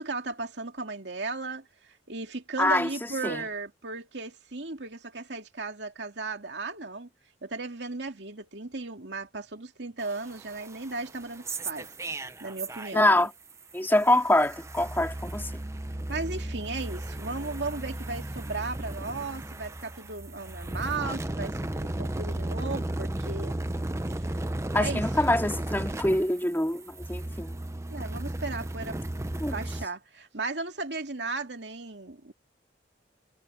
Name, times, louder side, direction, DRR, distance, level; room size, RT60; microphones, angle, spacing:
voice 1, 0.0-1.7 2.1-7.1 7.4-11.9 12.4-13.3 16.1-23.6 24.2-24.3 24.7-25.0 27.9-29.0 29.4-32.3, right 3 dB, 75° right, 2.5 m, -36 dB
voice 2, 2.6-2.9 3.2-3.4 12.9-13.3 13.7-15.5 24.7-27.5 29.4-29.6, left 1 dB, 10° left, 2.2 m, -25 dB
sound 1, 10.0-13.2 13.5-29.9, right 1 dB, 15° right, 0.7 m, -35 dB
head